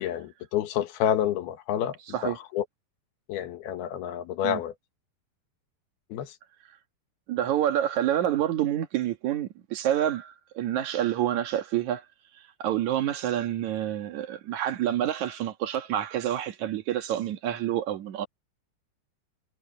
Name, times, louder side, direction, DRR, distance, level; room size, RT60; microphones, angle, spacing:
voice 1, 0.0-2.0 2.2-2.7 3.3-4.7 6.1-6.4, left 10 dB, 85° left, 3.4 m, -29 dB
voice 2, 7.3-12.0 12.6-18.3, right 11 dB, 60° right, 2.5 m, -28 dB
omnidirectional pair, 4.3 m